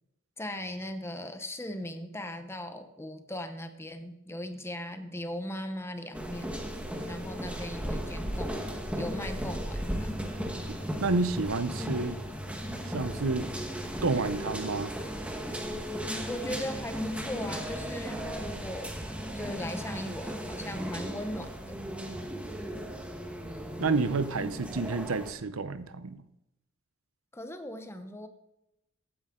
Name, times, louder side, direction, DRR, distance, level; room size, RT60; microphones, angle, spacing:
voice 1, 0.4-6.6 7.1-10.1 16.2-18.9 19.3-21.8 27.3-28.3, left 1 dB, 10° left, 8 dB, 0.9 m, -38 dB
sound 1, 6.1-25.3, equal, 5° right, 1.3 m, -36 dB
sound 2, 6.2-13.0, equal, 50° right, 4.3 m, -53 dB
voice 2, 11.0-12.2 12.8-13.5 14.0-14.9 23.8-26.2, right 3 dB, 70° right, 12 dB, 0.7 m, -29 dB
15.0 x 9.7 x 3.8 m, 0.87 s
head